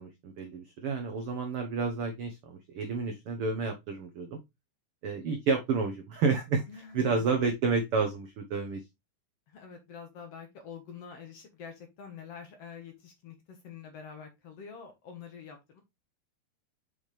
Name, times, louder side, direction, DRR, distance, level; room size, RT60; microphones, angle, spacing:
voice 1, 0.0-4.4 5.0-8.8, right 4 dB, 80° right, 4 dB, 1.2 m, -30 dB
voice 2, 6.7-7.2 9.5-15.8, left 6 dB, 60° left, 5 dB, 2.0 m, -46 dB
7.0 x 5.7 x 3.2 m, 0.21 s
omnidirectional pair, 3.9 m